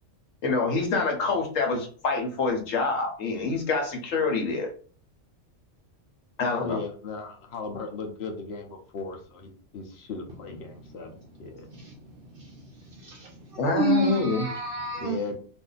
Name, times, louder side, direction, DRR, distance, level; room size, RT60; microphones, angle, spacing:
voice 1, 0.4-4.7 6.4-6.8 13.6-14.5, left 3 dB, 80° left, 1.2 m, -26 dB
voice 2, 6.6-11.1 11.4-11.7 14.9-15.4, left 4 dB, 60° left, 0.8 m, -36 dB
voice 3, 13.0-15.2, right 2 dB, 60° right, 0.6 m, -29 dB
2.6 x 2.5 x 3.8 m
omnidirectional pair, 1.3 m